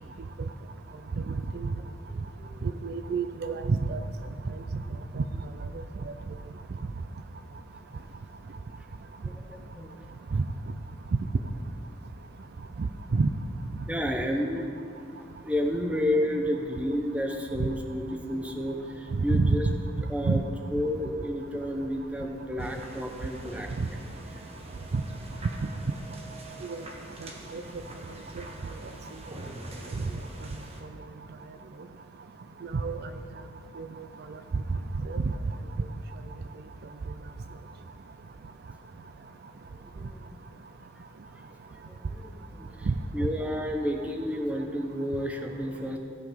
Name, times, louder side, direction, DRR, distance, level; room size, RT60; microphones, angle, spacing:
voice 1, 2.1-2.8 4.7-4.8 5.3-5.4 9.2-10.0 10.3-10.4 13.9-14.7 15.2-19.7 20.1-20.4 20.7-24.4 27.4-27.8 29.8-30.2 32.4-32.5 39.8-40.4 41.0-41.1 41.3-41.4 41.7-46.0, equal, 5° right, 3 dB, 0.8 m, -32 dB
voice 2, 2.6-4.0 5.2-5.3 10.3-10.4 13.1-13.3 19.3-19.6 20.3-20.4 26.7-26.8 27.2-27.6 32.7-33.0 33.8-33.9 35.1-35.2 42.9-43.0, right 4 dB, 55° right, 8 dB, 0.4 m, -27 dB
sound 1, 22.6-30.8, right 1 dB, 30° right, 1.0 m, -45 dB
15.5 x 5.8 x 5.1 m, 2.3 s
head